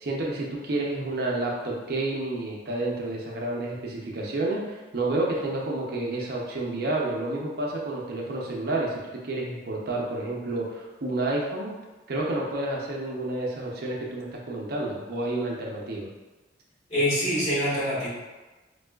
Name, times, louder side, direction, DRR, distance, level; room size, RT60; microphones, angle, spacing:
voice 1, 0.0-11.7 12.1-16.1, right 2 dB, 55° right, -2 dB, 0.6 m, -30 dB
voice 2, 16.9-18.1, equal, 35° left, -10 dB, 1.3 m, -25 dB
4.3 x 2.3 x 2.3 m, 1.2 s
head